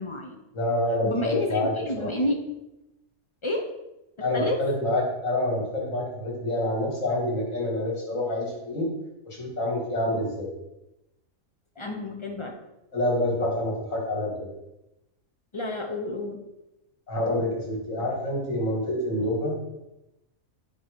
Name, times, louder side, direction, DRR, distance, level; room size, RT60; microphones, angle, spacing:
voice 1, 0.0-0.4 1.0-2.5 3.4-3.7 4.2-4.6 11.8-12.5 15.5-16.4, left 1 dB, 35° left, 2 dB, 0.5 m, -30 dB
voice 2, 0.5-2.1 4.2-8.9 9.3-10.5 12.9-14.5 17.1-19.6, left 1 dB, 70° left, -3 dB, 2.4 m, -27 dB
8.3 x 2.8 x 5.1 m, 0.91 s
omnidirectional pair, 1.4 m